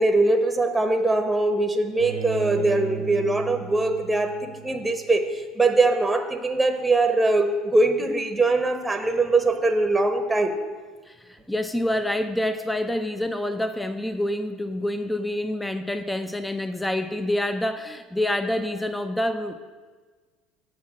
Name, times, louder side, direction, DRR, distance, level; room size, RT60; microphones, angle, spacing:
voice 1, 0.0-10.6, right 2 dB, 10° right, 6 dB, 0.9 m, -22 dB
Bowed string instrument, 2.0-5.0, right 9 dB, 90° right, 0.8 m, -35 dB
voice 2, 11.1-19.6, left 1 dB, 5° left, 9 dB, 0.5 m, -27 dB
8.5 x 4.7 x 7.3 m, 1.4 s
supercardioid pair, 95°, 0 cm